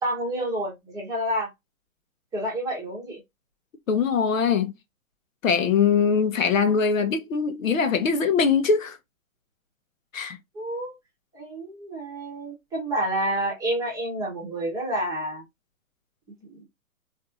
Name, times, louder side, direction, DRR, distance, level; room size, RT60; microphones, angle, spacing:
voice 1, 0.0-1.5 2.3-3.2 10.5-10.9 11.3-15.4 16.5-16.6, right 1 dB, 10° right, 1.0 m, -29 dB
voice 2, 3.9-4.7 5.4-9.0 10.1-10.4, left 6 dB, 65° left, 1.0 m, -22 dB
4.3 x 2.6 x 2.5 m
hypercardioid pair, 145°, 43 cm